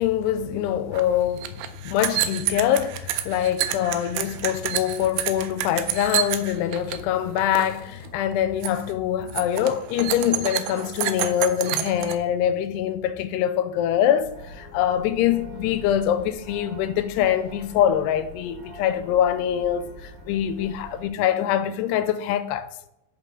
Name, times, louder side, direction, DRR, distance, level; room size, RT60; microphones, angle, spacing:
voice 1, 0.0-22.7, left 10 dB, 85° left, 2.6 m, -24 dB
sound 1, 0.9-1.0 1.3-7.0 7.3-7.8 8.1-8.3 8.6-8.9 9.3-12.2, right 12 dB, 85° right, 2.2 m, -28 dB
sound 2, 14.2-21.1, equal, 40° right, 1.9 m, -43 dB
9.5 x 5.2 x 3.7 m
omnidirectional pair, 4.7 m